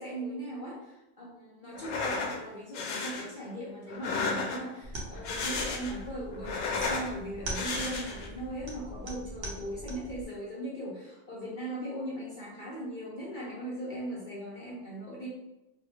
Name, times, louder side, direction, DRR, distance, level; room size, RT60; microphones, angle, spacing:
voice 1, 0.0-15.3, right 1 dB, 55° left, -5 dB, 0.6 m, -39 dB
sound 1, 1.7-2.4 2.7-3.3 3.9-4.8 5.1-6.0 6.3-7.1 7.5-8.3, left 4 dB, 70° left, 0.9 m, -33 dB
sound 2, 4.8-10.2, right 1 dB, 55° right, 0.8 m, -41 dB
3.3 x 2.2 x 3.1 m, 0.96 s
omnidirectional pair, 1.5 m